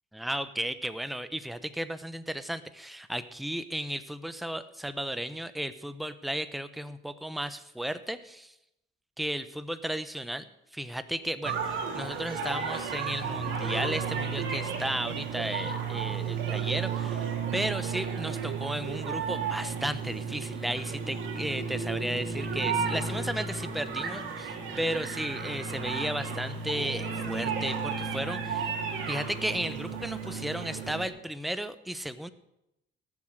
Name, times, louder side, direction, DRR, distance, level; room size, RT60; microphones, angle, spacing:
voice 1, 0.1-8.5 9.2-10.4 10.7-32.3, right 1 dB, ahead, 11 dB, 0.8 m, -34 dB
sound 1, 11.4-31.1, right 5 dB, 80° right, 2.6 m, -33 dB
18.5 x 7.3 x 6.6 m, 0.84 s
cardioid pair, 90°, 20 cm